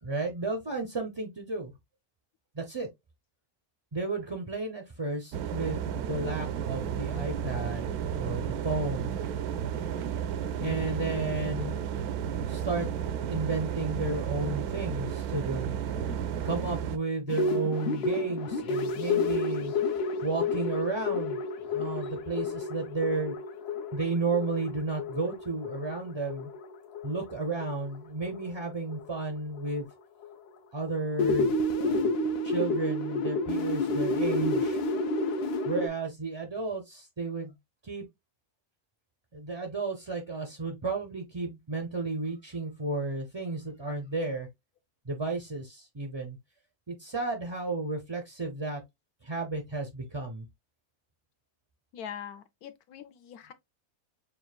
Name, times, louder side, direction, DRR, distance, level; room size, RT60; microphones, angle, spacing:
voice 1, 0.0-1.7 2.5-2.9 3.9-7.9 8.1-9.2 10.6-12.9 13.2-15.8 16.4-19.7 20.2-21.4 21.7-23.3 23.9-26.5 27.0-29.9 30.7-32.1 32.4-34.8 35.6-37.5 37.8-38.0 39.3-44.5 45.0-46.4 46.9-48.8 49.2-50.5, right 3 dB, 30° right, 0.5 m, -33 dB
sound 1, 5.3-17.0, right 8 dB, 85° right, 1.1 m, -32 dB
sound 2, 17.3-27.9 28.3-28.6 28.9-29.2 29.6-29.7 30.2-30.3 30.9-35.9, left 2 dB, 60° left, 0.6 m, -30 dB
voice 2, 51.9-53.5, left 8 dB, 80° left, 1.2 m, -43 dB
6.9 x 2.4 x 2.2 m
omnidirectional pair, 1.6 m